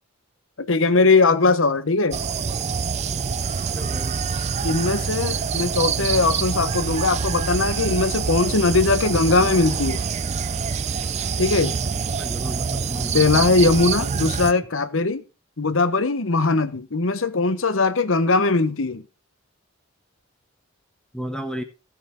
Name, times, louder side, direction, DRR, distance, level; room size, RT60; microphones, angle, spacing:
voice 1, 0.6-2.2 4.6-10.0 11.4-11.8 13.1-15.2 15.6-19.0, left 3 dB, 75° left, 1.0 m, -20 dB
sound 1, 2.1-14.5, right 5 dB, 35° right, 0.4 m, -26 dB
voice 2, 3.7-4.2 11.9-13.2 21.1-21.6, equal, 5° left, 1.3 m, -33 dB
16.0 x 6.0 x 3.8 m
head